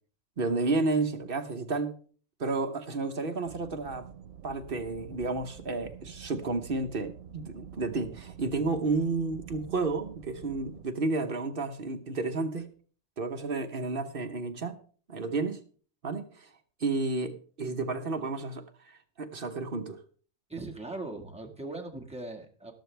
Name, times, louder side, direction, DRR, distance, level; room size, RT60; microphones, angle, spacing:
voice 1, 0.4-2.0 2.4-4.1 4.4-12.7 13.2-14.8 15.1-15.6 16.0-16.5 16.8-20.0, right 3 dB, 45° right, 6 dB, 1.2 m, -31 dB
sound 1, 3.4-10.8, right 9 dB, 90° right, 1.2 m, -48 dB
voice 2, 20.5-22.7, right 2 dB, 5° right, 0 dB, 1.6 m, -39 dB
13.0 x 12.0 x 3.4 m, 0.43 s
omnidirectional pair, 1.4 m